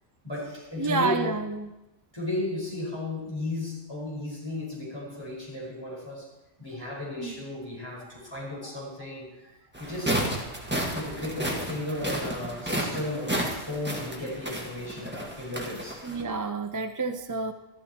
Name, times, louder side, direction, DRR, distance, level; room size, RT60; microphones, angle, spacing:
voice 1, 0.2-1.3 2.1-6.3 6.6-10.2 10.9-16.0, left 2 dB, 25° left, -5 dB, 5.1 m, -34 dB
voice 2, 0.8-1.7 7.2-7.4 16.0-17.5, right 3 dB, 25° right, 7 dB, 0.4 m, -29 dB
sound 1, 9.7-16.2, right 1 dB, 10° right, 1.8 m, -32 dB
13.5 x 12.5 x 4.4 m, 0.95 s
omnidirectional pair, 1.1 m